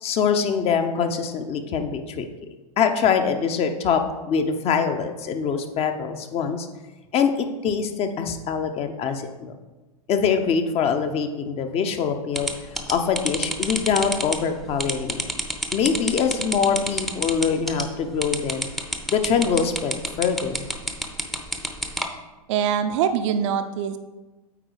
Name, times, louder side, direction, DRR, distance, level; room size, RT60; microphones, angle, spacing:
voice 1, 0.0-2.3 2.8-4.0 4.3-6.7 7.1-9.6 10.1-12.5 12.9-15.2 15.7-18.7 19.1-20.6, left 6 dB, 30° left, 7 dB, 0.8 m, -24 dB
sound 1, 12.4-22.1, right 1 dB, ahead, 0.7 m, -28 dB
voice 2, 22.5-24.0, right 8 dB, 55° right, 8 dB, 0.6 m, -23 dB
8.7 x 4.0 x 4.8 m, 1.1 s
hypercardioid pair, 100°, 19 cm